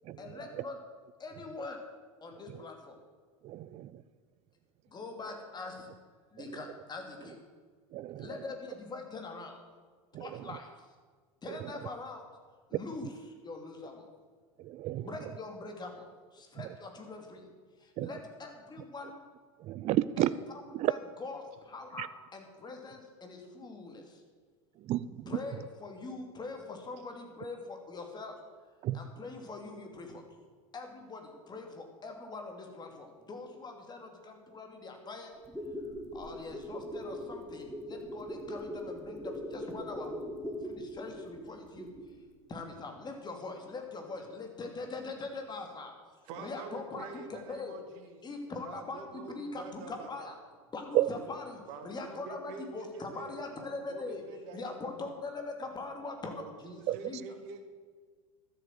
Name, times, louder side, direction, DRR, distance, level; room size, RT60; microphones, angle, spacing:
voice 1, 0.2-0.8 1.2-1.9 2.2-3.0 4.9-5.9 6.3-7.4 8.1-9.6 10.2-10.9 11.4-12.3 12.7-13.1 13.4-14.1 15.0-17.5 17.8-19.2 20.2-20.3 20.9-24.2 25.3-28.4 28.9-30.2 30.7-35.3 36.1-41.9 42.5-45.9 46.4-47.7 48.2-50.4 50.7-54.2 54.5-57.2, left 3 dB, 25° left, 3 dB, 2.8 m, -42 dB
voice 2, 3.4-4.0 6.4-6.6 7.9-8.3 10.1-10.5 11.5-11.7 14.6-15.1 16.6-16.7 18.0-18.1 19.6-20.3 20.7-20.9 22.0-22.1 24.8-25.3 28.8-29.0 50.9-51.1 56.9-57.0, right 15 dB, 40° right, 17 dB, 0.5 m, -32 dB
sound 1, 35.4-42.2 42.5-42.6, equal, ahead, 2.7 m, -41 dB
voice 3, 46.3-50.4 51.7-55.2 56.3-57.6, right 4 dB, 60° right, 6 dB, 2.1 m, -47 dB
13.0 x 8.4 x 7.7 m, 1.5 s
hypercardioid pair, 90°, 17 cm